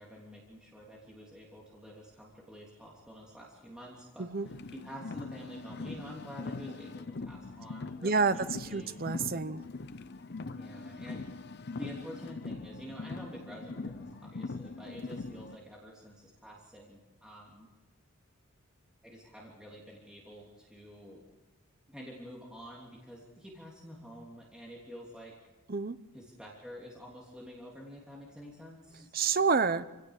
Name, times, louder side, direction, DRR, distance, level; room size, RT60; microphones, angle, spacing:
voice 1, 0.0-4.3 4.7-8.9 10.5-11.4 11.7-17.7 19.0-21.2 21.9-25.3 26.1-29.1, equal, 5° right, -4 dB, 3.1 m, -48 dB
Car, 4.4-15.5, left 3 dB, 45° left, 0.6 m, -42 dB
voice 2, 8.0-9.6 25.7-26.0 29.1-29.8, right 4 dB, 40° right, 13 dB, 0.7 m, -29 dB
27.5 x 17.0 x 6.6 m, 1.1 s
head